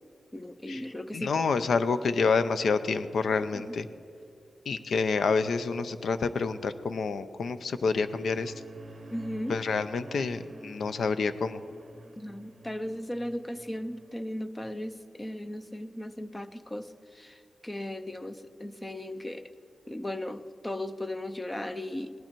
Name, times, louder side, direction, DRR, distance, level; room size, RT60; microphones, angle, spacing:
voice 1, 0.3-1.4 1.9-2.0 3.5-3.7 9.1-9.6 12.2-19.5 19.9-22.2, left 1 dB, 15° left, 10 dB, 0.5 m, -37 dB
voice 2, 1.1-3.9 4.7-8.5 9.5-11.6, left 4 dB, 65° left, 12 dB, 0.5 m, -28 dB
sound 1, 7.6-14.2, right 2 dB, 35° right, 0.8 m, -49 dB
18.5 x 11.5 x 4.5 m, 2.5 s
wide cardioid pair, 175°, 0 cm